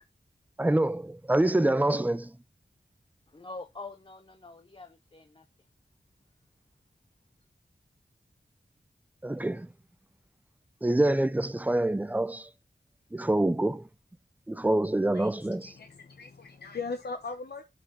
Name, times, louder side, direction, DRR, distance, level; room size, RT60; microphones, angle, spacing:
voice 1, 0.6-2.4 9.2-9.7 10.8-12.5 13.1-13.9 14.5-15.8, right 1 dB, 10° right, 0.5 m, -26 dB
voice 2, 3.3-5.5, left 3 dB, 30° left, 0.7 m, -45 dB
voice 3, 15.8-17.6, left 4 dB, 70° left, 0.9 m, -38 dB
12.5 x 4.6 x 2.9 m
wide cardioid pair, 55°, 18 cm